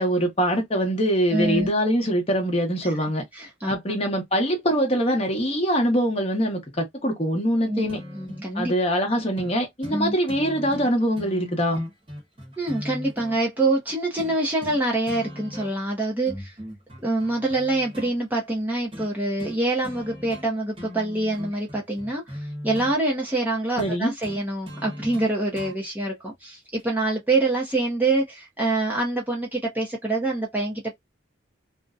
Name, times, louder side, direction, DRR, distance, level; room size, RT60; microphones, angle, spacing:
voice 1, 0.0-3.2 3.7-8.0 8.5-11.9 23.8-24.1, equal, 30° left, 0.9 m, -23 dB
voice 2, 1.3-1.7 2.8-2.9 3.3-3.8 7.7-7.9 8.1-8.7 9.9-10.1 12.6-16.5 17.0-31.0, right 2 dB, 10° right, 0.6 m, -25 dB
sound 1, 7.9-8.5 9.4-9.5 9.8-10.0 10.3-13.4 14.2-14.8 15.1-15.9 16.3-18.1 18.9-19.1 19.4-19.6 19.8-20.5 20.7-22.9 23.8-25.8 26.8-26.9, equal, 25° right, 1.0 m, -38 dB
2.5 x 2.1 x 2.3 m
head